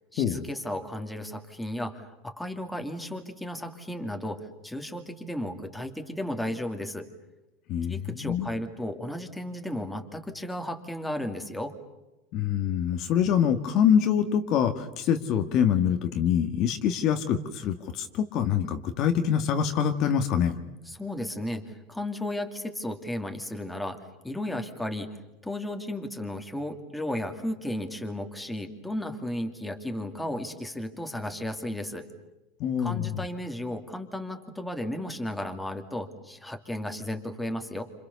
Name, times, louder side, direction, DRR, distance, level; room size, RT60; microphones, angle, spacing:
voice 1, 0.1-7.1 7.9-11.7 20.9-25.1 25.4-32.1 32.8-37.8, left 1 dB, 5° left, 4 dB, 2.5 m, -34 dB
voice 2, 7.7-8.5 12.3-20.5 32.6-33.2, left 8 dB, 40° left, 6 dB, 1.8 m, -25 dB
29.0 x 27.5 x 7.0 m, 1.0 s
supercardioid pair, 150°, 0 cm